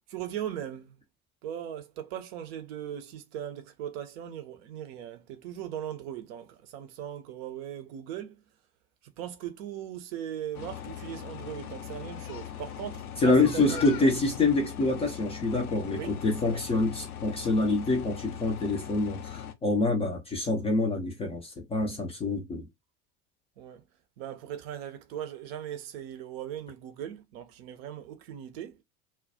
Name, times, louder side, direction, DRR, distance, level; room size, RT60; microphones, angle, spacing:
voice 1, 0.1-0.9 1.4-8.4 9.0-14.1 15.9-16.1 16.5-16.6 23.6-23.8 24.2-28.8, right 10 dB, 45° right, 0.5 m, -39 dB
sound 1, 10.5-19.5, left 9 dB, 75° left, 0.6 m, -40 dB
voice 2, 13.2-22.7, left 2 dB, 15° left, 0.4 m, -26 dB
2.2 x 2.1 x 2.6 m
figure-of-eight pair, 75°, 44 cm